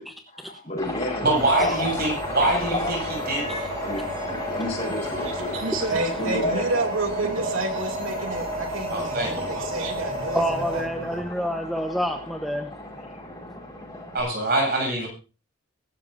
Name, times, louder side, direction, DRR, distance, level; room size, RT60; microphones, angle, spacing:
voice 1, 0.0-2.0 2.2-3.3 3.8-5.6 6.0-6.9 8.2-8.6 9.0-9.1 13.1-13.3, left 1 dB, 30° left, 4.3 m, -32 dB
Aircraft, 0.8-14.2, left 1 dB, 15° left, 5.1 m, -36 dB
voice 2, 1.2-3.0 3.3-3.7 8.9-9.5 14.1-15.1, right 2 dB, 45° right, 7.8 m, -24 dB
sound 1, 1.3-10.8, equal, 25° right, 6.1 m, -32 dB
voice 3, 5.3-10.4 10.7-11.2, right 2 dB, 75° right, 2.5 m, -29 dB
voice 4, 10.3-12.8, equal, ahead, 1.0 m, -28 dB
23.5 x 12.5 x 2.7 m
head